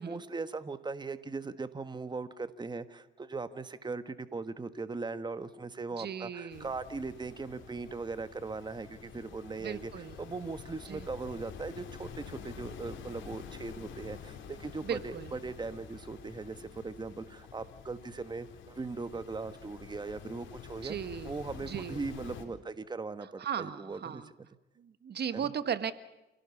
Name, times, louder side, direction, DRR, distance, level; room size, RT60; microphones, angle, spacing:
voice 1, 0.0-21.0 21.2-24.2 25.3-25.5, right 3 dB, 20° right, 11 dB, 1.4 m, -39 dB
voice 2, 6.0-6.7 9.6-10.2 10.9-11.1 14.8-15.3 20.8-21.4 21.7-22.0 23.4-24.3 24.8-25.9, right 8 dB, 55° right, 12 dB, 1.4 m, -37 dB
sound 1, 6.5-22.4, left 7 dB, 75° left, 4.0 m, -48 dB
28.0 x 17.0 x 7.2 m, 0.99 s
cardioid pair, 90°, 20 cm